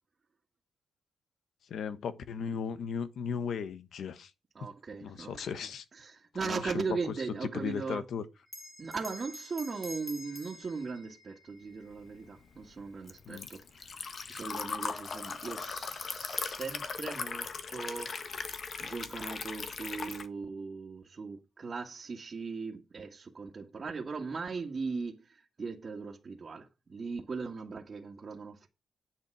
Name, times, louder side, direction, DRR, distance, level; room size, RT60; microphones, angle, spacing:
voice 1, 1.7-4.3 5.0-5.8 6.4-7.1 7.4-8.2 13.3-13.5, left 6 dB, 80° left, 1.3 m, -36 dB
voice 2, 4.6-5.5 5.9-8.1 8.8-18.1 18.8-28.7, right 4 dB, 45° right, 2.0 m, -39 dB
Bell, 8.5-13.3, left 1 dB, 5° left, 2.3 m, -49 dB
Liquid, 12.0-20.3, left 5 dB, 55° left, 1.6 m, -39 dB
10.0 x 7.8 x 4.9 m
cardioid pair, 100°, 0 cm